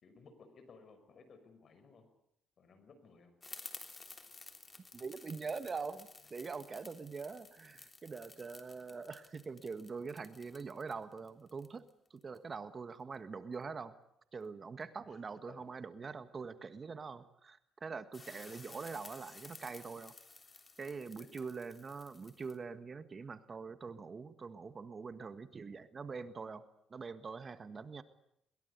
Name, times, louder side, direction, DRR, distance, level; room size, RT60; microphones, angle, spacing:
voice 1, 0.0-2.1 2.6-3.3 15.1-15.2 15.5-15.7 21.2-21.3, left 4 dB, 55° left, 10 dB, 6.0 m, -58 dB
sound 1, 3.4-12.4 18.1-22.6, left 3 dB, 30° left, 3.5 m, -54 dB
voice 2, 4.9-13.9 14.3-20.1 20.8-26.6 26.9-28.0, right 5 dB, 40° right, 11 dB, 1.6 m, -44 dB
22.0 x 21.5 x 8.3 m, 0.74 s
cardioid pair, 90°, 0 cm